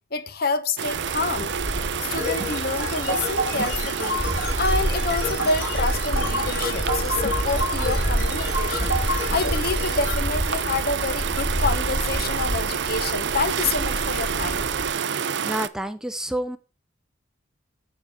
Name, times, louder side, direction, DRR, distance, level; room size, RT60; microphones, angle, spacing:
voice 1, 0.1-1.6 1.9-4.2 4.6-8.9 9.3-14.7, left 3 dB, 55° left, 1.0 m, -28 dB
sound 1, 0.8-15.7, right 7 dB, 65° right, 0.5 m, -29 dB
sound 2, 0.9-14.9, equal, 35° left, 3.4 m, -29 dB
sound 3, 2.1-10.1, left 1 dB, 70° left, 4.0 m, -30 dB
voice 2, 15.4-16.6, right 1 dB, 5° right, 0.6 m, -29 dB
9.4 x 7.1 x 4.9 m
head